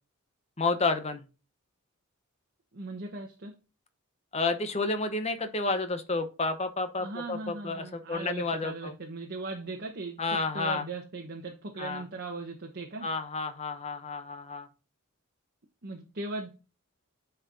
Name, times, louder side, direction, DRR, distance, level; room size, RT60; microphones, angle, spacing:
voice 1, 0.6-1.2 4.3-8.9 10.2-10.8 11.8-12.0 13.0-14.7, left 3 dB, 30° left, 0.8 m, -30 dB
voice 2, 2.7-3.5 7.0-13.1 15.8-16.5, right 3 dB, 50° right, 1.0 m, -38 dB
9.6 x 4.5 x 2.6 m
head